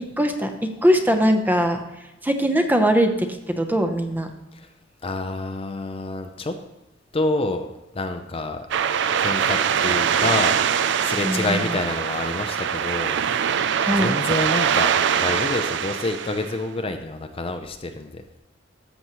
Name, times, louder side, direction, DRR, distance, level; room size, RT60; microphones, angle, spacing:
voice 1, 0.0-1.8 2.2-4.3 11.2-11.6 13.8-14.1, equal, 10° right, 5 dB, 0.8 m, -21 dB
voice 2, 5.0-6.6 7.1-7.7 7.9-8.7 9.2-13.2 13.9-18.2, left 2 dB, 30° left, 6 dB, 0.6 m, -28 dB
sound 1, 8.7-16.5, right 8 dB, 65° right, 0.4 m, -23 dB
13.5 x 7.1 x 3.1 m, 0.97 s
head